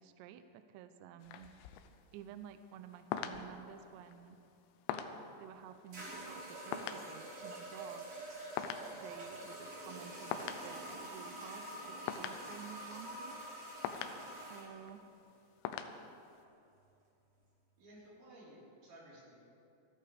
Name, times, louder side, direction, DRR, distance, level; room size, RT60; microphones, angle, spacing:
voice 1, 0.0-1.5 2.1-4.4 5.4-8.1 8.9-13.5 14.3-15.1, right 9 dB, 85° right, 9 dB, 2.6 m, -52 dB
sound 1, 1.2-16.4, left 8 dB, 85° left, 3.0 m, -45 dB
sound 2, 5.1-5.2 5.9-14.7, right 1 dB, 35° right, 4.8 m, -46 dB
voice 2, 17.8-19.4, right 1 dB, 65° right, -7 dB, 6.5 m, -56 dB
27.5 x 11.0 x 3.5 m, 2.7 s
omnidirectional pair, 5.7 m